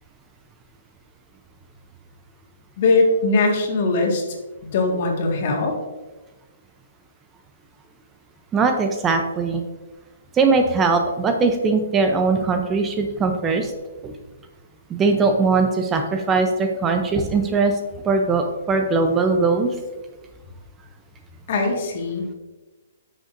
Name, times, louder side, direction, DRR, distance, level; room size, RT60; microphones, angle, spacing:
voice 1, 2.8-4.2 4.7-5.7 21.5-22.3, left 3 dB, 50° left, 1 dB, 1.7 m, -20 dB
voice 2, 8.5-9.6 10.3-13.7 14.0-14.1 14.9-17.8 18.0-19.8, right 4 dB, 15° right, 5 dB, 0.6 m, -20 dB
9.9 x 6.5 x 2.6 m, 1.2 s
hypercardioid pair, 150°, 0 cm